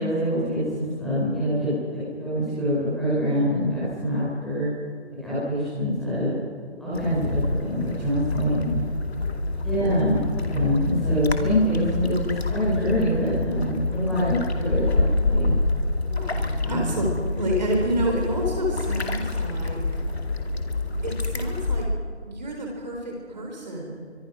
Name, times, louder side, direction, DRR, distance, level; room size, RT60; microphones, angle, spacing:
voice 1, 0.0-4.7 5.2-6.3 6.8-8.8 9.6-15.5 16.6-16.8, equal, ahead, -12 dB, 5.6 m, -25 dB
sound 1, 6.9-21.9, left 2 dB, 65° left, 2.4 m, -27 dB
voice 2, 8.0-8.5 9.2-10.0 16.1-17.1 17.3-19.8 21.0-21.9 22.3-24.0, equal, 40° right, 0 dB, 4.1 m, -30 dB
24.5 x 24.5 x 6.2 m, 2.3 s
figure-of-eight pair, 175°, 35 cm